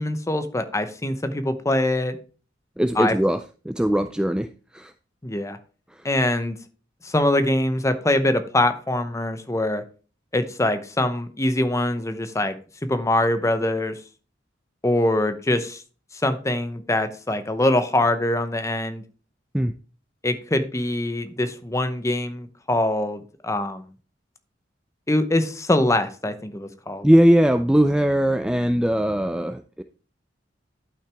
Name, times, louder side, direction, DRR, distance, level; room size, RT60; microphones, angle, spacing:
voice 1, 0.0-2.2 3.0-3.1 5.2-5.6 6.0-6.6 7.0-9.8 10.3-12.6 12.9-13.9 14.8-15.8 16.2-19.0 20.2-23.9 25.1-27.1, left 1 dB, 15° left, 10 dB, 0.8 m, -23 dB
voice 2, 2.8-3.4 3.7-4.5 4.7-4.9 19.5-19.7 27.0-29.8, equal, 5° right, 9 dB, 0.3 m, -20 dB
11.5 x 5.9 x 3.5 m, 0.36 s
head